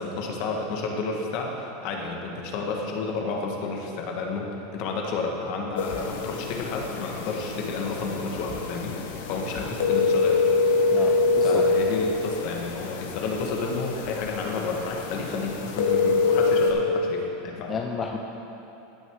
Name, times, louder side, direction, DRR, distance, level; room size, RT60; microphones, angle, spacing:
voice 1, 0.0-9.0 9.3-10.4 10.9-17.7, left 3 dB, 55° left, 1 dB, 1.3 m, -31 dB
sound 1, 5.8-16.7, left 4 dB, 80° left, 1.0 m, -25 dB
voice 2, 10.9-11.6 17.7-18.2, left 6 dB, 25° left, 2 dB, 0.5 m, -31 dB
16.0 x 6.3 x 3.6 m, 2.9 s
supercardioid pair, 145°, 0 cm